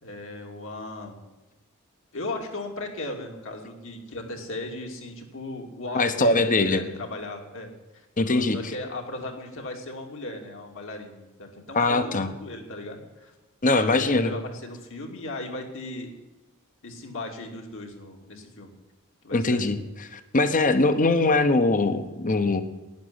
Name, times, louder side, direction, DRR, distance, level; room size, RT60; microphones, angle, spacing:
voice 1, 0.0-1.2 2.1-13.3 13.6-16.1 16.8-18.7 19.2-19.7, left 2 dB, 60° left, 2 dB, 2.7 m, -37 dB
voice 2, 5.9-6.8 8.2-8.6 11.7-12.3 13.6-14.3 19.3-19.8 20.1-22.6, left 2 dB, 35° left, 10 dB, 1.1 m, -22 dB
11.5 x 10.5 x 9.7 m, 1.1 s
head